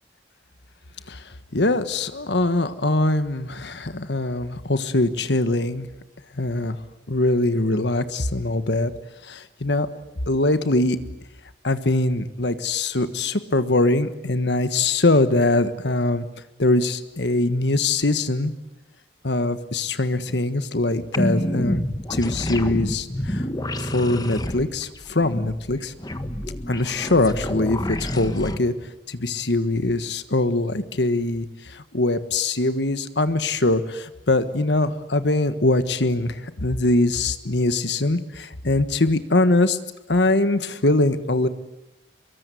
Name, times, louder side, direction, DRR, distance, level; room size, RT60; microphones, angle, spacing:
voice 1, 1.5-5.9 6.4-6.8 7.1-8.9 9.3-9.9 10.3-11.0 11.6-16.2 16.6-18.5 19.2-21.8 22.1-23.4 23.8-25.9 26.7-28.7 29.1-39.8 40.1-41.5, left 2 dB, 70° left, 11 dB, 1.5 m, -22 dB
sound 1, 21.1-28.6, left 1 dB, 20° left, 1.5 m, -28 dB
25.0 x 22.5 x 9.3 m, 0.91 s
head